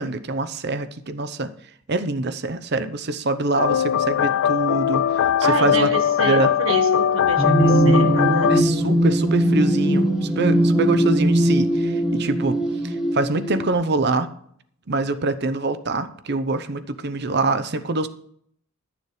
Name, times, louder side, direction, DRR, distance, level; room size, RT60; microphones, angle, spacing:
voice 1, 0.0-1.5 1.9-5.3 5.6-5.9 6.2-6.5 7.6-8.1 8.5-12.6 12.8-14.3 14.9-18.1, right 2 dB, 55° right, 12 dB, 0.8 m, -25 dB
sound 1, 3.6-8.6, left 9 dB, 85° left, 0.3 m, -20 dB
voice 2, 5.4-8.6, right 3 dB, 80° right, 4 dB, 1.6 m, -28 dB
sound 2, 7.4-13.7, right 1 dB, 5° right, 1.5 m, -20 dB
12.5 x 7.0 x 4.9 m, 0.65 s
head